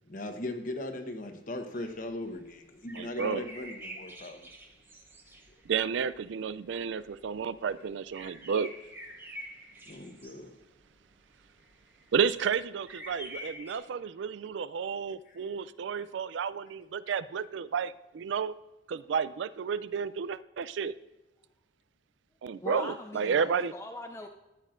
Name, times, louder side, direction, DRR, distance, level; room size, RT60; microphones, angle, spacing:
voice 1, 0.1-4.5 9.9-10.5 15.3-15.5, left 1 dB, 45° left, 5 dB, 1.0 m, -38 dB
sound 1, 1.7-13.8, equal, 10° right, 0.8 m, -47 dB
voice 2, 3.0-3.4 5.7-8.7 12.1-18.5 18.9-20.9 22.4-23.7, right 6 dB, 65° right, 17 dB, 0.3 m, -31 dB
voice 3, 22.6-24.3, left 1 dB, 15° left, 3 dB, 0.4 m, -40 dB
13.0 x 9.1 x 2.5 m, 1.1 s
head